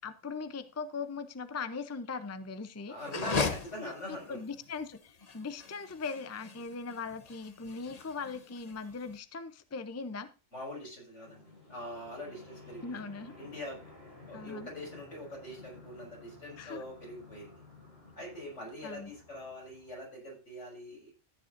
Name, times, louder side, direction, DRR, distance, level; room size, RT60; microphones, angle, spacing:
voice 1, 0.0-2.9 3.8-10.3 12.8-13.3 14.3-14.7 16.6-16.8 18.8-19.1, left 4 dB, 20° left, 11 dB, 0.4 m, -40 dB
voice 2, 2.9-4.4 10.5-13.0 13.4-13.9 14.3-17.6 18.2-21.1, left 1 dB, 85° left, -1 dB, 6.4 m, -43 dB
sound 1, 3.0-9.1, left 4 dB, 35° left, 0.9 m, -38 dB
sound 2, 11.2-20.0, left 2 dB, 55° left, 7.6 m, -54 dB
14.0 x 9.6 x 2.6 m, 0.31 s
omnidirectional pair, 1.2 m